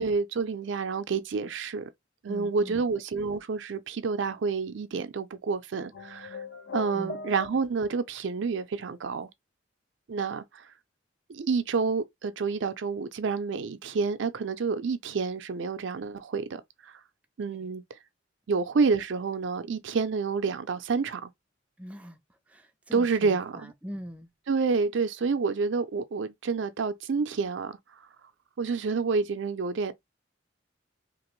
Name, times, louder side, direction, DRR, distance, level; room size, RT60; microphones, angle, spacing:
voice 1, 0.0-1.9 2.2-6.4 6.7-9.3 10.1-10.6 11.3-16.6 17.4-17.8 18.5-21.3 22.9-23.7 24.5-27.8 28.6-29.9, right 4 dB, 70° right, 0.4 m, -28 dB
voice 2, 2.3-2.8 6.9-7.2 17.5-17.7 21.8-24.3, equal, 5° right, 0.3 m, -43 dB
sound 1, 5.9-8.0, left 5 dB, 60° left, 0.5 m, -39 dB
2.9 x 2.5 x 3.0 m
head